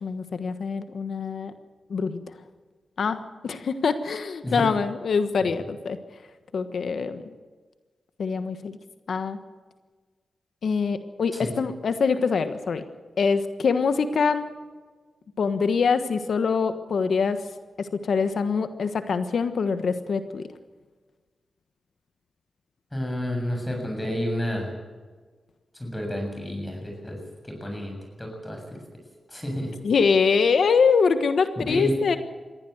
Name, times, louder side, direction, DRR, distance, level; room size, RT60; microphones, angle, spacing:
voice 1, 0.0-1.5 1.9-2.3 3.0-6.0 6.5-7.2 8.2-8.8 9.1-9.4 10.6-12.8 13.2-14.5 15.4-17.4 17.8-20.4 29.8-32.2, left 5 dB, 75° left, 10 dB, 1.3 m, -24 dB
voice 2, 22.9-24.8 25.7-27.2 27.4-28.8 29.3-29.7 31.6-32.2, equal, 15° left, 2 dB, 7.2 m, -30 dB
21.5 x 16.0 x 8.0 m, 1.4 s
cardioid pair, 65°, 0 cm